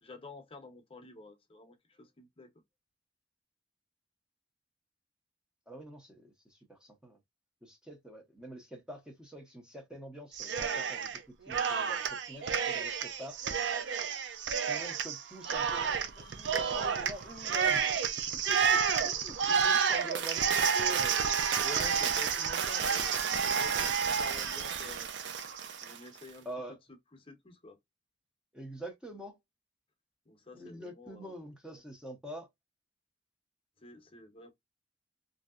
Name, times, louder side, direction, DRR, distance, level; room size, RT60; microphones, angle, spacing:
voice 1, 0.0-2.5 19.3-19.6 21.6-25.1 25.8-26.5 27.1-27.8 30.3-31.3 33.8-34.5, left 2 dB, 30° left, 0.7 m, -49 dB
voice 2, 5.7-7.2 7.6-11.1 11.5-13.6 14.7-17.8 18.5-21.3 26.4-26.8 28.5-29.4 30.5-32.5, right 1 dB, 5° right, 0.6 m, -46 dB
Cheering, 10.3-11.2 11.5-26.0, right 6 dB, 90° right, 0.5 m, -30 dB
3.1 x 2.6 x 2.3 m
head